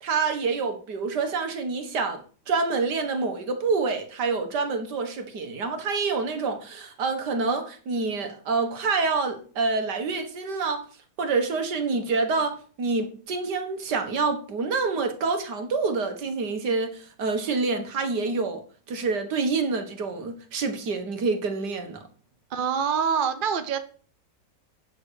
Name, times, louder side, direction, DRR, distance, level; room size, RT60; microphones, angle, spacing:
voice 1, 0.0-2.2 2.5-10.8 11.2-18.6 18.9-22.1, right 4 dB, 65° right, 2.0 m, -27 dB
voice 2, 22.5-23.8, right 7 dB, 40° right, 0.7 m, -25 dB
9.4 x 6.3 x 6.4 m
omnidirectional pair, 2.0 m